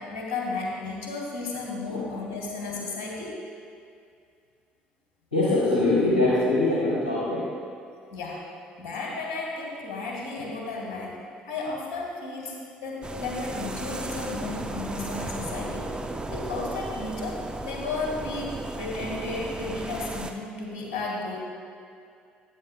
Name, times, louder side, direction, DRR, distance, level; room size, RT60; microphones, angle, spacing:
voice 1, 0.0-3.4 8.1-8.5 8.8-11.2 11.4-12.6 12.8-15.9 16.3-21.4, left 3 dB, 65° left, -1 dB, 1.9 m, -33 dB
voice 2, 5.3-7.5, left 2 dB, 85° left, -8 dB, 1.1 m, -23 dB
sound 1, 13.0-20.3, right 2 dB, 15° right, 0.7 m, -35 dB
15.0 x 8.8 x 2.3 m, 2.4 s
figure-of-eight pair, 50°, 5 cm